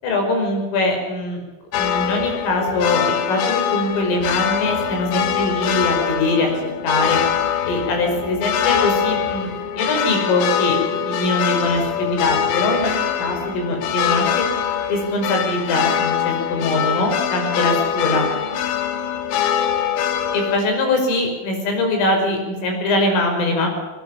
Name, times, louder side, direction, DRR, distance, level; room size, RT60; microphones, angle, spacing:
voice 1, 0.0-1.4 1.7-7.2 7.6-14.5 14.9-18.3 20.3-23.7, left 2 dB, 90° left, 3 dB, 8.0 m, -22 dB
sound 1, 1.7-20.6, left 9 dB, 70° left, 3.6 m, -23 dB
22.0 x 20.5 x 7.2 m, 1.2 s
omnidirectional pair, 5.7 m